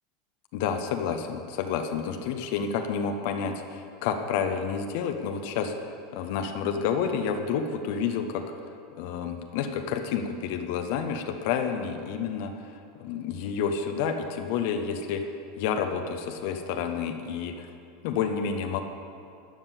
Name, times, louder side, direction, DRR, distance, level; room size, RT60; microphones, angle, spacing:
voice 1, 0.5-5.7 6.1-8.4 9.0-15.2 15.6-17.7 18.0-18.8, left 6 dB, 55° left, 6 dB, 0.9 m, -29 dB
12.5 x 7.2 x 8.3 m, 2.4 s
figure-of-eight pair, 80°, 0 cm